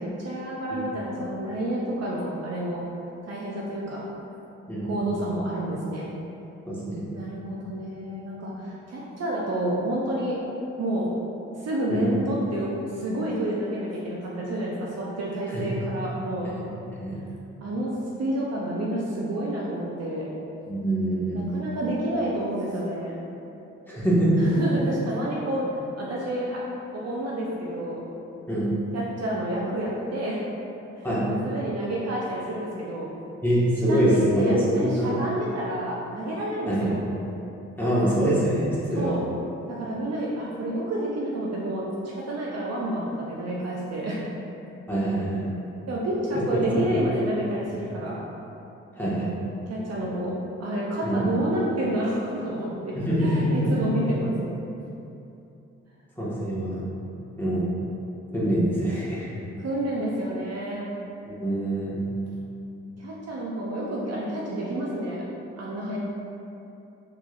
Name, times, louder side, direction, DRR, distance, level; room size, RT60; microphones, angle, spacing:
voice 1, 0.0-2.8 3.2-4.1 4.8-6.1 7.1-10.4 10.8-11.1 11.6-16.5 17.6-20.3 21.3-23.2 24.4-25.7 26.0-26.6 26.9-28.1 28.9-30.4 31.0-33.1 33.9-37.0 38.9-39.2 39.7-44.2 45.9-48.3 49.7-54.3 59.6-60.9 63.0-65.2 65.6-66.0, right 1 dB, 50° right, -5 dB, 0.6 m, -29 dB
voice 2, 4.7-5.0 6.7-7.1 11.9-12.1 15.5-15.6 16.4-16.5 16.9-17.2 20.7-21.5 23.9-24.6 28.5-28.7 31.0-31.2 33.4-35.2 36.7-36.9 37.8-39.2 44.9-45.5 46.7-47.0 49.0-49.3 51.0-51.2 53.1-53.7 56.2-56.8 57.4-57.7 58.3-59.3 61.3-62.0, right 1 dB, 5° left, -10 dB, 1.4 m, -24 dB
3.5 x 3.2 x 2.4 m, 2.8 s
hypercardioid pair, 45°, 33 cm